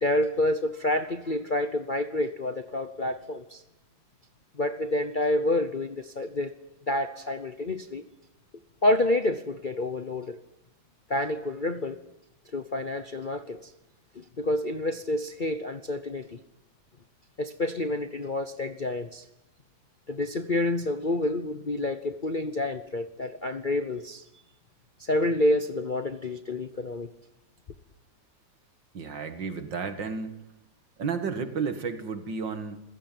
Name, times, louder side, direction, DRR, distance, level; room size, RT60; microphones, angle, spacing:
voice 1, 0.0-3.6 4.6-6.5 6.9-8.0 8.8-10.4 11.1-12.0 12.5-13.7 14.2-16.4 17.4-19.2 20.1-24.2 25.0-27.1, left 1 dB, 35° left, 9 dB, 0.8 m, -28 dB
voice 2, 28.9-30.4 31.0-32.8, right 5 dB, 70° right, 9 dB, 2.5 m, -32 dB
27.0 x 16.0 x 9.3 m, 0.89 s
omnidirectional pair, 2.1 m